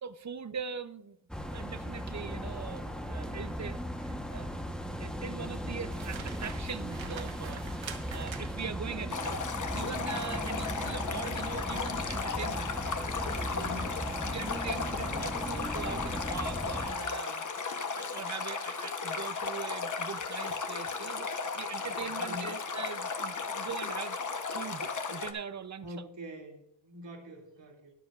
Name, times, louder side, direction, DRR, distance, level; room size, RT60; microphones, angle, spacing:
voice 1, 0.0-4.5 5.0-7.8 8.1-12.8 14.2-24.2 24.5-26.1, right 6 dB, 40° right, 13 dB, 0.6 m, -42 dB
sound 1, 1.3-16.9, equal, ahead, 1.0 m, -37 dB
sound 2, 5.9-8.9 11.3-11.6 12.1-12.3, right 7 dB, 85° right, 1.2 m, -46 dB
Stream, 9.1-25.3, left 4 dB, 40° left, 1.0 m, -35 dB
voice 2, 13.5-14.0 21.8-22.5 25.8-27.9, equal, 70° right, 0 dB, 2.6 m, -45 dB
21.5 x 7.4 x 2.4 m, 0.81 s
wide cardioid pair, 150°, 45 cm